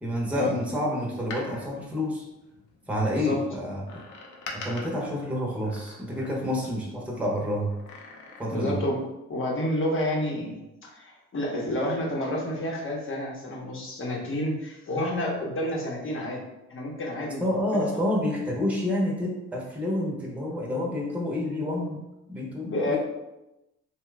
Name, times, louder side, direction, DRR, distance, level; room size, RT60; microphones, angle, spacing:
voice 1, 0.0-2.2 2.9-4.0 4.5-7.7 8.4-8.8 17.4-22.0 22.3-23.0, left 1 dB, 5° right, -3 dB, 0.8 m, -28 dB
Door, 1.1-2.9 3.8-6.7 7.6-8.8 9.1-9.2, left 3 dB, 85° left, 0.7 m, -43 dB
voice 2, 8.5-9.0 9.3-16.4 16.7-17.5 17.7-18.0 22.6-23.0, left 1 dB, 40° left, -1 dB, 0.9 m, -30 dB
2.9 x 2.3 x 3.3 m, 0.95 s
cardioid pair, 90°, 30 cm